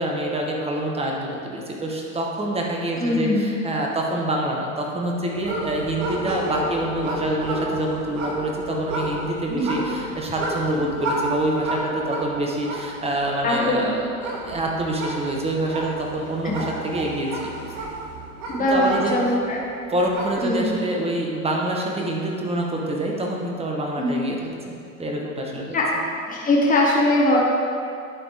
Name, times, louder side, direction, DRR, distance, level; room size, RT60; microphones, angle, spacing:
voice 1, 0.0-17.5 18.6-19.2 19.9-24.4 24.6-25.8, right 1 dB, 15° right, -1 dB, 1.2 m, -26 dB
voice 2, 3.0-3.5 9.5-9.7 13.4-13.8 16.4-16.5 18.5-19.6 20.4-20.7 24.0-24.2 25.7-25.9 26.3-27.4, left 1 dB, 20° left, -4 dB, 1.6 m, -21 dB
sound 1, 5.3-19.5 19.9-20.6, right 2 dB, 70° right, 1.4 m, -31 dB
11.0 x 4.1 x 3.5 m, 2.5 s
hypercardioid pair, 95°, 41 cm